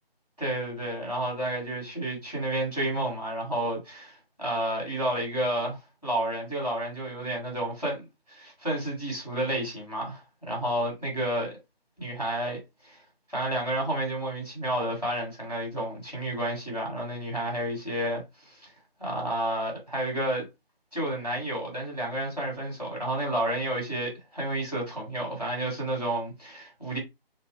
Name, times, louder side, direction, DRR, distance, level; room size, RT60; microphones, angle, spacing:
voice 1, 0.4-11.5 12.0-12.6 12.8-13.0 13.3-18.7 19.0-20.4 20.9-27.0, right 1 dB, ahead, 0.9 m, -31 dB
4.1 x 2.2 x 4.6 m
figure-of-eight pair, 160°, 31 cm